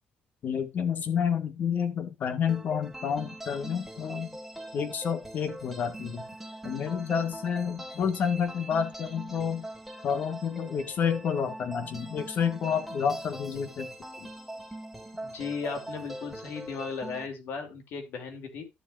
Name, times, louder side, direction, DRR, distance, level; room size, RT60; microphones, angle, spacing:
voice 1, 0.4-4.3 4.7-6.2 6.6-9.7 10.0-13.9 14.2-14.3, left 7 dB, 55° left, 9 dB, 1.7 m, -29 dB
sound 1, 2.5-17.3, right 1 dB, 5° right, 1.9 m, -42 dB
voice 2, 15.2-18.6, left 5 dB, 75° left, 4 dB, 2.9 m, -36 dB
12.5 x 7.0 x 2.6 m, 0.23 s
cardioid pair, 115°, 4 cm